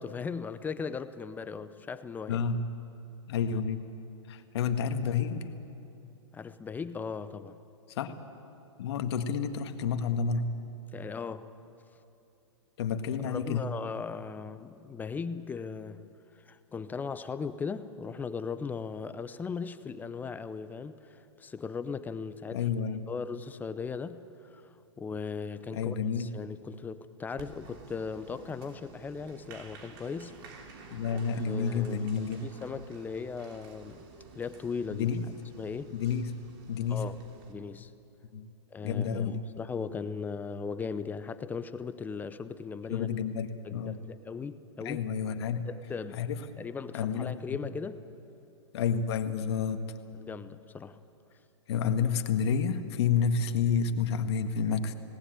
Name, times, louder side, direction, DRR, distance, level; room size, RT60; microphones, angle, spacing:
voice 1, 0.0-2.4 6.3-7.6 10.9-11.5 13.2-16.1 16.4-22.7 23.1-31.2 31.5-34.0 34.3-35.1 35.6-36.0 36.9-37.2 37.5-37.9 38.7-43.1 43.6-45.0 45.6-46.2 46.6-48.0 50.2-51.0, left 5 dB, 10° left, 13 dB, 0.6 m, -38 dB
voice 2, 2.3-2.6 3.3-3.9 4.3-5.4 7.9-8.1 8.8-10.5 12.8-13.7 22.5-23.0 25.7-26.3 30.9-32.4 34.9-35.2 35.9-36.3 36.7-37.0 38.3-38.5 38.8-39.4 42.9-44.0 44.8-45.7 46.1-46.4 46.9-47.3 48.7-49.8 51.7-54.9, left 6 dB, 60° left, 7 dB, 1.6 m, -30 dB
Applause, 27.4-37.5, right 4 dB, 50° right, 3.0 m, -51 dB
19.0 x 18.5 x 8.9 m, 2.9 s
hypercardioid pair, 135°, 16 cm